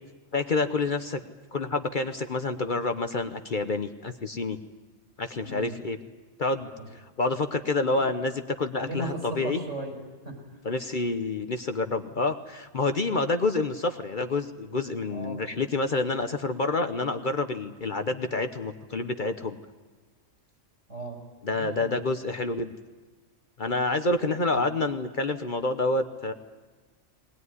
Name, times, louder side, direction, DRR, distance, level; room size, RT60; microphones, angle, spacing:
voice 1, 0.3-1.2 1.5-4.6 5.2-6.0 6.4-6.7 7.2-9.6 10.6-19.6 21.4-22.7 23.6-26.3, left 3 dB, 45° left, 7 dB, 1.0 m, -28 dB
voice 2, 5.4-5.8 6.8-6.9 7.9-8.0 8.8-10.6 15.1-15.4 20.9-21.2 21.5-22.0 24.5-24.7, right 1 dB, 75° right, 2 dB, 5.3 m, -37 dB
21.5 x 19.5 x 9.6 m, 1.3 s
omnidirectional pair, 1.3 m